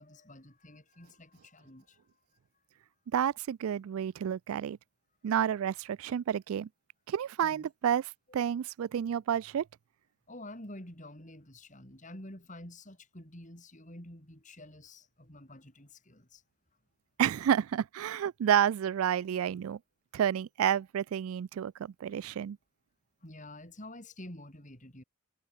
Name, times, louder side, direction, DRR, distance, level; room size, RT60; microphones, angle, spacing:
voice 1, 0.0-2.0 7.4-7.7 10.3-16.4 23.2-25.0, left 1 dB, 35° left, 6.8 m, -49 dB
voice 2, 3.1-4.8 5.2-6.7 7.1-9.6 17.2-19.8 20.1-22.6, right 9 dB, 75° right, 0.3 m, -30 dB
head